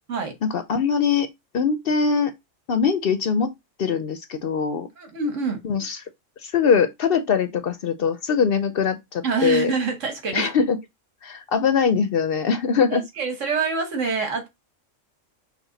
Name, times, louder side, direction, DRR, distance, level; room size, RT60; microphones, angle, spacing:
voice 1, 0.4-1.3 1.5-2.3 2.7-3.5 3.8-4.9 5.6-6.0 6.4-9.7 10.3-10.8 11.2-13.0, left 6 dB, 60° left, 0.7 m, -22 dB
voice 2, 5.0-5.6 9.2-10.5 12.9-14.5, right 5 dB, 75° right, 1.7 m, -26 dB
5.9 x 2.3 x 3.9 m
omnidirectional pair, 1.3 m